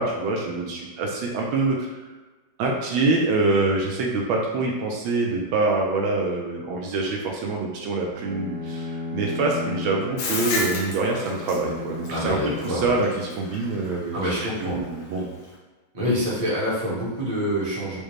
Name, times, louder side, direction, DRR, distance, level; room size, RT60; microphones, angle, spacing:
voice 1, 0.0-2.1 2.6-12.4 12.6-14.3 14.6-15.3, right 3 dB, 80° right, 0 dB, 1.3 m, -25 dB
Bowed string instrument, 8.1-13.9, left 2 dB, 50° right, 0.9 m, -35 dB
Bathtub (filling or washing), 10.2-15.5, left 3 dB, 70° left, 1.3 m, -32 dB
voice 2, 12.1-12.9 14.1-14.8 15.9-18.0, equal, 25° right, -8 dB, 0.8 m, -26 dB
5.0 x 2.1 x 3.1 m, 1.3 s
omnidirectional pair, 2.3 m